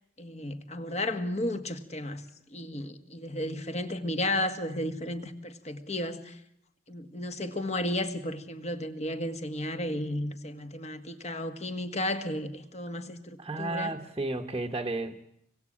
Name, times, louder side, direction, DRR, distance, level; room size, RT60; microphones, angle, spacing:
voice 1, 0.2-2.2 2.5-6.4 6.9-14.0, left 1 dB, 30° left, 1.7 m, -33 dB
voice 2, 13.4-15.2, right 2 dB, 20° right, 1.2 m, -33 dB
26.0 x 22.5 x 8.7 m
head